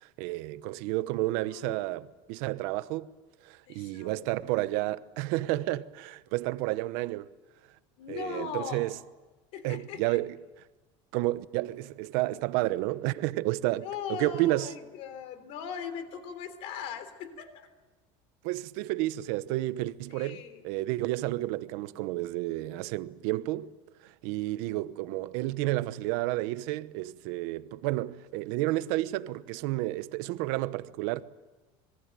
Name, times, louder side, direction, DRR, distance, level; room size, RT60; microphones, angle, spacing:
voice 1, 0.0-3.1 3.4-7.3 8.1-9.0 9.6-10.4 11.1-14.7 18.4-23.7 24.0-31.2, right 18 dB, 60° right, 1.0 m, -31 dB
voice 2, 1.4-1.9 3.7-4.7 8.0-8.9 9.5-10.2 13.8-17.7 20.1-20.6 24.2-24.5, left 7 dB, 50° left, 3.6 m, -40 dB
26.0 x 22.0 x 9.1 m
cardioid pair, 175°, 13 cm